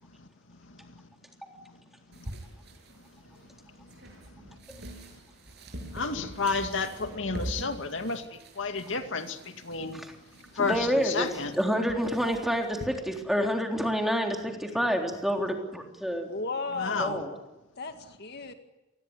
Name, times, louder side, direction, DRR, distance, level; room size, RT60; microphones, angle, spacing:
sound 1, 2.1-12.9, right 1 dB, 60° right, 7.7 m, -44 dB
voice 1, 5.9-8.2 8.6-9.4 9.6-10.0 10.6-11.5 16.7-17.2, left 4 dB, 70° left, 7 dB, 2.4 m, -31 dB
voice 2, 10.6-11.3 11.5-16.3 17.0-17.3, equal, ahead, 2 dB, 3.6 m, -28 dB
voice 3, 16.3-17.4 17.8-17.9 18.2-18.5, left 3 dB, 55° left, 6 dB, 2.1 m, -35 dB
28.0 x 21.0 x 9.8 m, 1.0 s
head